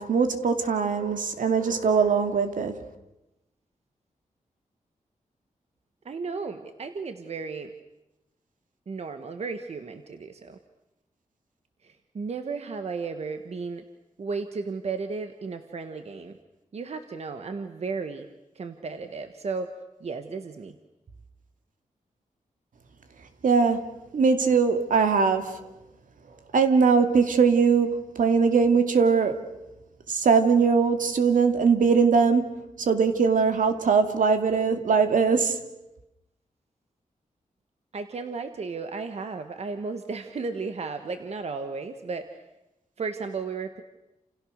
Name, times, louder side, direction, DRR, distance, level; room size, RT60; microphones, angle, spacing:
voice 1, 0.0-2.7 23.4-23.9 24.1-25.6 26.5-29.4 30.1-35.6, right 5 dB, 75° right, 7 dB, 2.5 m, -21 dB
voice 2, 6.0-7.7 8.9-10.6 11.8-13.8 14.2-16.4 16.7-18.3 18.5-19.7 20.0-20.8 37.9-42.4 43.0-43.8, right 4 dB, 50° right, 8 dB, 1.4 m, -34 dB
29.5 x 28.5 x 6.5 m, 0.94 s
wide cardioid pair, 175°, 14 cm